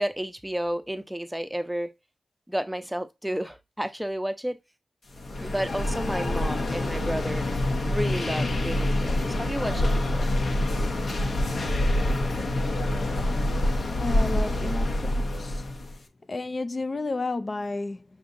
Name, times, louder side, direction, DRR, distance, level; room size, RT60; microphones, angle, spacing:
voice 1, 0.0-1.9 2.5-4.6 5.4-7.5 7.8-10.3, right 1 dB, 5° right, 0.6 m, -31 dB
sound 1, 5.1-16.0, left 1 dB, 70° left, 0.8 m, -26 dB
voice 2, 14.0-15.7 16.3-18.0, left 3 dB, 45° left, 0.3 m, -31 dB
6.0 x 2.7 x 2.5 m
wide cardioid pair, 80°, 0 cm